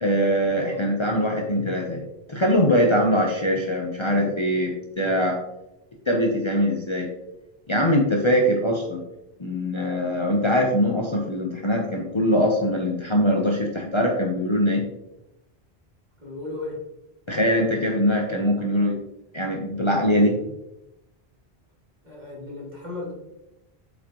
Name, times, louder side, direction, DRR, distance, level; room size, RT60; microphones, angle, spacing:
voice 1, 0.0-2.0 2.3-5.4 6.1-7.1 7.7-9.0 9.4-14.8 17.3-19.0 19.3-20.4, equal, 30° left, 0 dB, 0.8 m, -22 dB
voice 2, 16.2-16.8 22.0-23.1, left 2 dB, 45° right, -6 dB, 3.0 m, -35 dB
8.4 x 5.2 x 3.0 m, 0.90 s
omnidirectional pair, 1.1 m